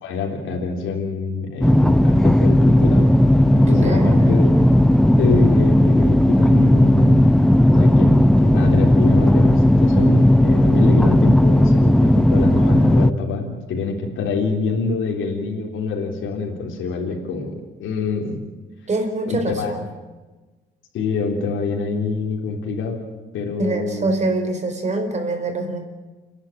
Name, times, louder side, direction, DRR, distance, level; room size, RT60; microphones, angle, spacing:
voice 1, 0.0-3.1 3.5-4.5 5.2-7.2 7.7-18.4 19.2-19.7 20.9-23.0 23.3-24.1, left 4 dB, 85° left, 1 dB, 3.6 m, -26 dB
sound 1, 1.6-13.1, left 1 dB, ahead, 0.7 m, -14 dB
voice 2, 3.7-4.5 18.9-19.9 23.6-25.8, right 2 dB, 35° right, 5 dB, 4.6 m, -24 dB
29.0 x 11.5 x 8.9 m, 1.2 s
cardioid pair, 90°, 20 cm